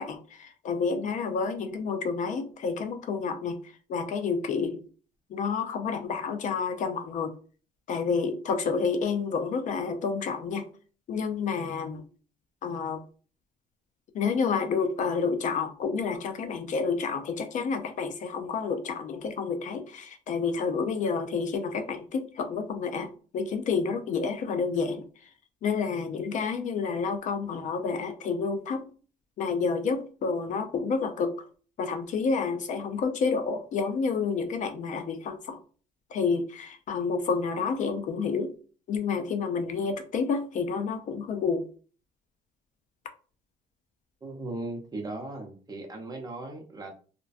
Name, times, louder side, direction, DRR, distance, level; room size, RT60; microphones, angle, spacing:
voice 1, 0.0-4.8 5.3-7.3 7.9-10.7 11.1-12.0 12.6-13.0 14.1-23.1 23.3-25.0 25.6-28.9 29.4-31.3 31.8-35.6 36.1-38.5 38.9-41.7, left 5 dB, 50° left, 7 dB, 0.4 m, -29 dB
voice 2, 44.2-47.0, right 2 dB, 20° right, 2 dB, 0.6 m, -37 dB
2.4 x 2.1 x 2.4 m, 0.39 s
cardioid pair, 110°, 17 cm